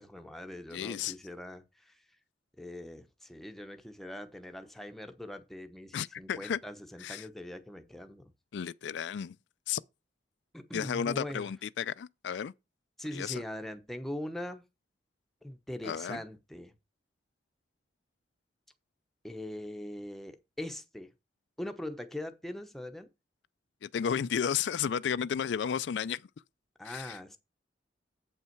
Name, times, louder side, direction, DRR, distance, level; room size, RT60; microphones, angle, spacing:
voice 1, 0.0-2.0 2.6-8.3 10.5-11.5 13.0-14.6 15.4-16.7 19.2-21.1 21.6-23.1 26.8-27.4, left 1 dB, ahead, 0.8 m, -42 dB
voice 2, 0.7-1.1 5.9-6.6 7.0-7.2 8.5-9.4 9.7-9.8 10.7-12.5 13.1-13.4 15.8-16.2 23.8-26.2 26.8-27.2, left 8 dB, 75° left, 0.4 m, -33 dB
8.0 x 5.5 x 4.6 m
head